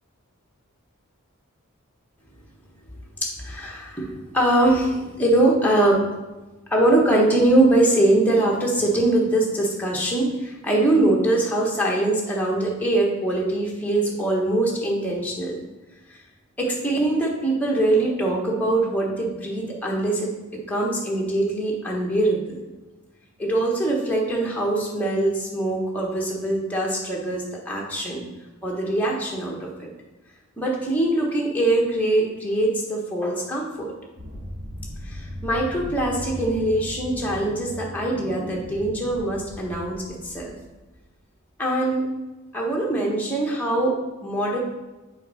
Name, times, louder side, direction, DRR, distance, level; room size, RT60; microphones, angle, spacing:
voice 1, 3.2-6.0 6.7-15.6 16.1-16.2 16.6-20.3 20.7-22.6 23.4-28.2 28.6-29.9 30.6-33.9 35.0-40.0 40.2-40.5 41.6-42.0 42.5-43.9 44.2-44.6, right 1 dB, 5° left, -2 dB, 1.1 m, -22 dB
sound 1, 34.2-41.0, equal, 40° right, 1.4 m, -37 dB
6.8 x 4.2 x 4.8 m, 1.1 s
head